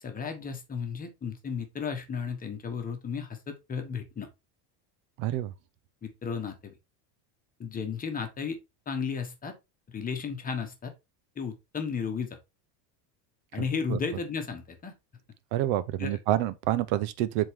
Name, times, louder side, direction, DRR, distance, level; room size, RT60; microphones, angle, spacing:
voice 1, 0.0-4.3 6.0-6.8 7.6-8.6 8.9-9.5 9.9-10.9 11.4-12.4 13.5-14.9 16.0-16.2, left 6 dB, 20° left, 1.1 m, -34 dB
voice 2, 5.2-5.5 13.9-14.0 15.5-17.5, right 13 dB, 60° right, 0.7 m, -28 dB
7.7 x 3.7 x 3.5 m
cardioid pair, 160°, 46 cm